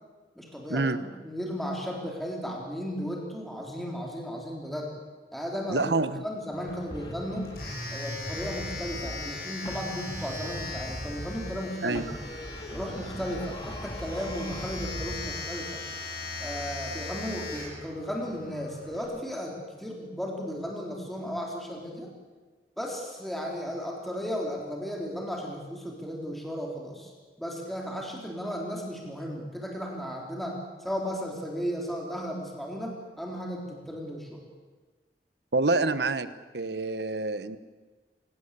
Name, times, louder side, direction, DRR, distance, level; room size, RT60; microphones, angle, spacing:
voice 1, 0.4-4.9 5.3-5.9 6.2-7.5 7.9-12.0 12.7-15.8 16.4-22.1 22.8-27.1 27.4-34.4, equal, ahead, -1 dB, 3.6 m, -35 dB
voice 2, 5.7-6.2 11.8-12.0 35.5-36.3 36.5-37.6, right 3 dB, 75° right, 13 dB, 1.2 m, -27 dB
Domestic sounds home sounds, 6.5-19.0, left 2 dB, 60° left, 7.9 m, -40 dB
sound 1, 6.9-9.4 9.6-11.7 11.9-15.4, equal, 25° left, 2.1 m, -39 dB
27.5 x 17.5 x 8.4 m, 1.3 s
head